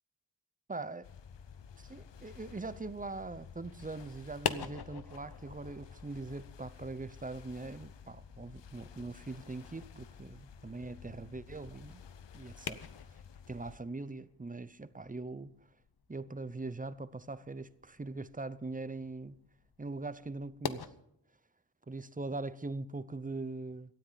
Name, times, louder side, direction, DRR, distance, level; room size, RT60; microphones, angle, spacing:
voice 1, 0.7-1.0 1.8-12.0 12.3-12.8 13.5-15.5 16.1-19.4 19.8-20.9 21.9-23.9, right 3 dB, 20° right, 0.7 m, -42 dB
sound 1, 1.0-13.8, left 6 dB, 85° left, 0.9 m, -52 dB
sound 2, 4.2-20.9, left 6 dB, 60° left, 1.0 m, -46 dB
18.0 x 13.0 x 4.0 m
wide cardioid pair, 105°, 42 cm